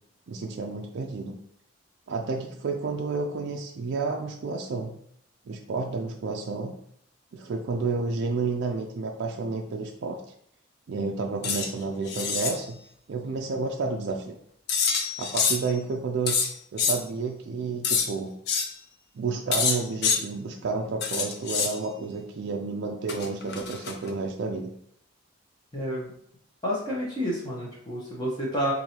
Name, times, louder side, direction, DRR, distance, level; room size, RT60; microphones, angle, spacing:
voice 1, 0.3-1.4 2.1-5.0 5.5-6.7 7.3-10.2 10.9-12.8 13.1-14.4 15.2-16.4 16.7-18.3 19.1-24.7, right 4 dB, 55° right, 2 dB, 0.3 m, -30 dB
sound 1, 11.4-11.7 12.1-12.6 14.7-15.7 16.3-17.0 17.8-18.1 18.5-18.7 19.5-20.2 21.0-21.7 23.1-24.1, left 5 dB, 50° left, 0.5 m, -26 dB
voice 2, 25.7-26.1 26.6-28.7, equal, 20° left, -5 dB, 0.8 m, -29 dB
4.6 x 2.6 x 2.8 m, 0.69 s
head